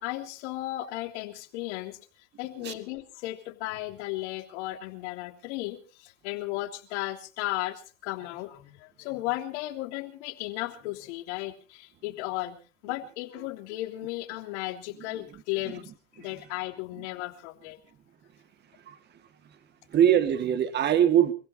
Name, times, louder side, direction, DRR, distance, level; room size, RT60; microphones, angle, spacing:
voice 1, 0.0-2.0 2.4-12.6 12.8-17.8, left 17 dB, 60° left, 4 dB, 3.3 m, -35 dB
voice 2, 18.7-19.6 19.9-21.3, right 10 dB, 25° right, 12 dB, 1.9 m, -24 dB
29.5 x 15.5 x 2.8 m, 0.35 s
supercardioid pair, 135°, 39 cm